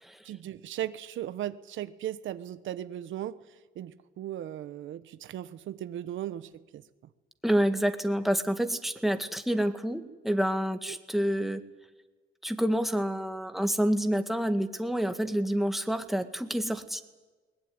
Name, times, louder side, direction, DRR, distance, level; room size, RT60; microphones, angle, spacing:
voice 1, 0.2-6.8 10.9-11.0, right 12 dB, 75° right, 12 dB, 1.1 m, -37 dB
voice 2, 7.4-11.6 12.4-17.0, equal, ahead, 7 dB, 1.9 m, -28 dB
21.5 x 20.0 x 9.7 m, 1.3 s
cardioid pair, 90°, 20 cm